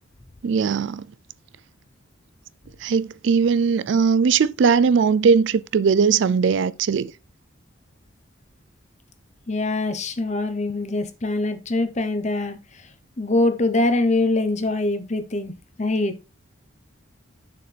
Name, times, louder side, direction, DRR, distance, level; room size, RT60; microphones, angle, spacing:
voice 1, 0.4-1.1 2.8-7.1, right 5 dB, 60° right, 0.3 m, -19 dB
voice 2, 9.5-12.6 13.2-15.5 15.8-16.1, left 2 dB, 35° left, 0.9 m, -23 dB
6.8 x 6.6 x 3.4 m
head